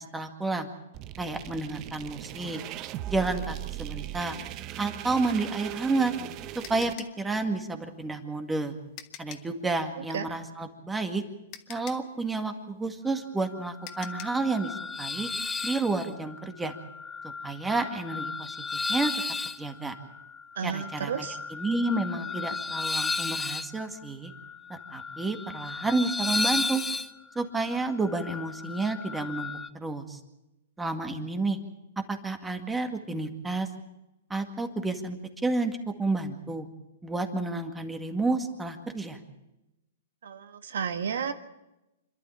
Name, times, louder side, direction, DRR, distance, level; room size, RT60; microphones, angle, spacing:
voice 1, 0.1-0.7 1.2-2.6 3.1-4.3 4.8-6.1 6.7-6.9 7.2-8.8 9.2-11.2 11.7-15.3 15.6-16.7 17.2-19.1 19.6-19.9 20.6-21.3 21.5-24.3 24.7-26.8 27.4-30.2 30.8-31.6 32.1-33.7 34.3-35.2 35.4-36.7 37.0-39.2, right 3 dB, 10° right, 6 dB, 2.0 m, -30 dB
sound 1, 0.9-6.9, right 14 dB, 35° right, 0.7 m, -39 dB
sound 2, 6.1-9.6 11.0-11.1 11.5-14.5, left 11 dB, 35° left, 1.6 m, -46 dB
sound 3, 13.5-29.7, left 4 dB, 10° left, 0.8 m, -34 dB
voice 2, 20.6-21.4 40.2-41.3, right 7 dB, 80° right, 9 dB, 1.8 m, -32 dB
27.0 x 12.0 x 8.7 m, 0.95 s
hypercardioid pair, 140°, 0 cm